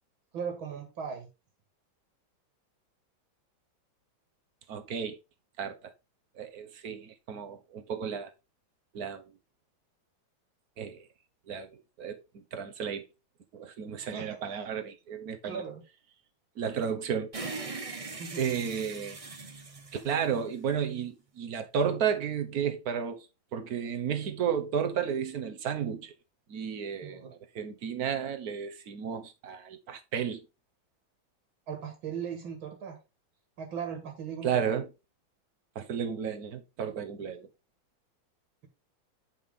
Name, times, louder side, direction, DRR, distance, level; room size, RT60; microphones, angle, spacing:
voice 1, 0.3-1.3 14.0-14.4 15.4-15.8 18.2-18.5 27.0-27.3 31.7-33.0 33.6-34.7, right 7 dB, 85° right, 2.6 m, -38 dB
voice 2, 4.7-5.2 5.6-5.9 6.4-8.3 8.9-9.2 10.8-11.1 11.5-11.7 12.0-13.1 13.5-15.6 16.6-17.3 18.4-19.2 19.9-23.3 23.5-26.1 26.5-27.2 27.5-30.4 34.4-34.9 35.7-37.5, right 7 dB, 55° right, 1.5 m, -33 dB
sound 1, 17.3-20.8, right 3 dB, 25° right, 0.8 m, -40 dB
9.7 x 5.4 x 3.7 m
omnidirectional pair, 2.1 m